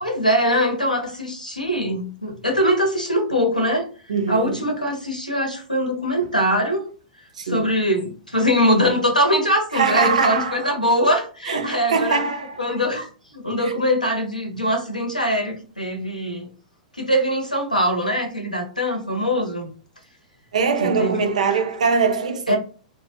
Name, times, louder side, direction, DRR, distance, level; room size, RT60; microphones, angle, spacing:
voice 1, 0.0-3.9 4.3-6.8 7.4-12.2 12.6-16.5 17.0-19.7 20.8-21.2 22.5-22.6, equal, 90° left, 0.7 m, -22 dB
voice 2, 4.1-4.7 7.4-7.7 9.7-10.7 11.5-12.6 13.6-13.7 20.5-22.6, right 5 dB, 60° right, 0.4 m, -22 dB
2.2 x 2.1 x 2.7 m
figure-of-eight pair, 105°, 4 cm